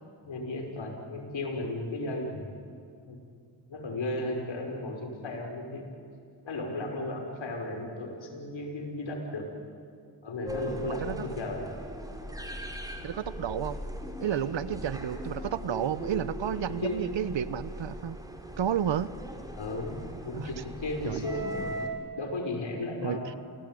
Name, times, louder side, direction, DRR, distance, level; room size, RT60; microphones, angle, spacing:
voice 1, 0.2-2.5 3.0-3.2 3.7-5.9 6.4-9.5 10.2-11.6 16.8-17.2 19.6-21.8 22.2-23.3, left 2 dB, 65° left, 2 dB, 5.8 m, -35 dB
sound 1, 10.5-21.9, equal, 5° right, 4.4 m, -39 dB
voice 2, 13.0-13.8 14.2-18.2 18.6-19.1 20.3-20.5 21.1-21.3 23.0-23.2, right 9 dB, 65° right, 16 dB, 1.1 m, -31 dB
28.5 x 18.5 x 9.2 m, 2.3 s
supercardioid pair, 50°, 48 cm